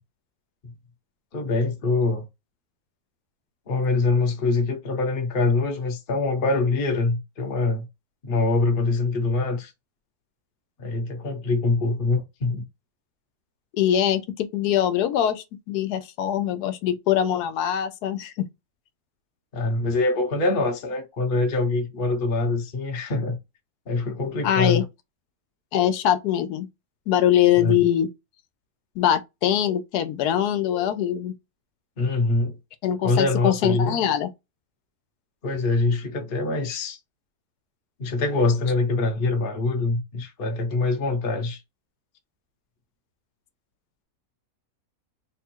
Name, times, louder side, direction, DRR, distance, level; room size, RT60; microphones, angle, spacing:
voice 1, 1.3-2.2 3.7-7.9 8.2-9.7 10.8-12.6 19.5-23.4 23.9-24.8 27.6-27.8 32.0-32.6 33.0-34.0 35.4-37.0 38.0-41.6, left 3 dB, 45° left, 0.8 m, -24 dB
voice 2, 13.7-18.3 24.4-24.9 25.7-26.7 27.1-28.1 29.0-31.3 32.8-34.3, left 10 dB, 85° left, 1.2 m, -23 dB
3.4 x 2.3 x 4.4 m
omnidirectional pair, 1.6 m